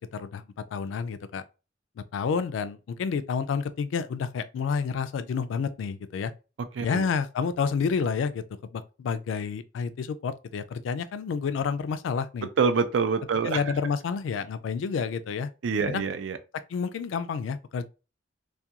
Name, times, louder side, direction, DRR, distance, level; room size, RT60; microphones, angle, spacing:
voice 1, 0.1-0.4 0.7-1.4 2.1-6.3 6.8-8.4 8.7-12.5 13.4-15.5 15.9-16.0 16.7-17.8, left 6 dB, 90° left, 0.3 m, -29 dB
voice 2, 6.8-7.1 12.6-13.6 15.6-16.4, right 5 dB, 70° right, 0.4 m, -25 dB
2.4 x 2.2 x 2.8 m
head